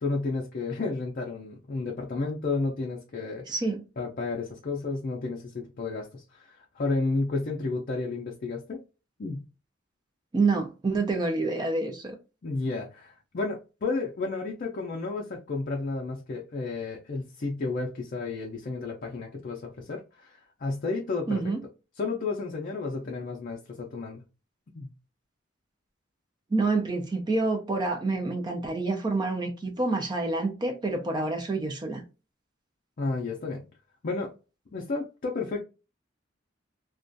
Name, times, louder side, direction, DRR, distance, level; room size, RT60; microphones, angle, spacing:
voice 1, 0.0-3.4 4.0-8.8 9.2-9.5 12.4-21.4 22.0-24.2 24.7-24.9 33.0-33.6 34.0-34.3 34.7-35.6, left 3 dB, 45° left, 0.4 m, -32 dB
voice 2, 3.5-3.8 10.3-12.2 21.3-21.6 26.5-32.0, right 3 dB, 20° right, 0.3 m, -27 dB
2.4 x 2.2 x 2.5 m
head